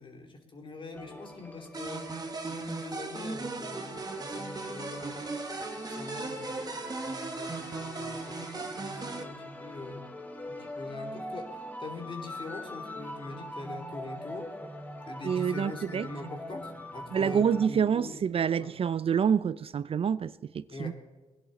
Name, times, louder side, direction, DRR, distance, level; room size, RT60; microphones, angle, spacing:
voice 1, 0.0-2.1 2.5-10.2 10.4-14.5 15.0-18.2 18.6-18.8 20.7-20.9, left 2 dB, 40° left, 3.0 m, -43 dB
sound 1, 0.9-17.7, left 1 dB, 10° left, 1.8 m, -43 dB
sound 2, 1.7-9.2, right 3 dB, 30° right, 1.5 m, -37 dB
voice 2, 15.2-16.1 17.1-20.9, right 7 dB, 45° right, 0.4 m, -27 dB
20.0 x 11.0 x 4.1 m
cardioid pair, 85°, 13 cm